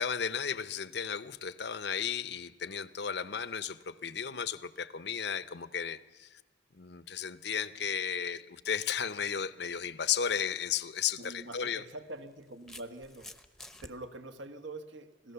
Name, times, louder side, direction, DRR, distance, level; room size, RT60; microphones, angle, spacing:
voice 1, 0.0-6.4 6.7-11.8, left 7 dB, 60° left, 15 dB, 0.8 m, -34 dB
sound 1, 10.9-11.0 12.0-13.9, left 1 dB, ahead, 0.8 m, -49 dB
voice 2, 11.2-13.3 13.8-15.3, right 2 dB, 80° right, 8 dB, 1.5 m, -45 dB
27.0 x 17.0 x 6.9 m, 1.2 s
head